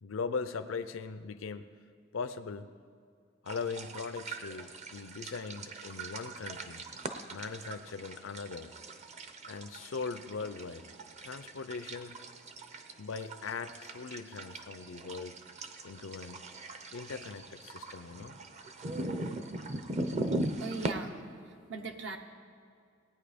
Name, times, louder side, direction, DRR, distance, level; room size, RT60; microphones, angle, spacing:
voice 1, 0.0-1.7 2.1-2.7 3.4-6.8 7.3-8.7 9.5-10.9 11.2-12.2 13.0-15.4 15.8-16.4 16.9-18.4, left 5 dB, 80° left, 10 dB, 0.5 m, -40 dB
sound 1, 3.5-20.9, right 2 dB, 35° right, 0.7 m, -40 dB
voice 2, 20.6-22.2, right 4 dB, 65° right, 4 dB, 1.0 m, -40 dB
18.5 x 9.0 x 5.1 m, 2.3 s
head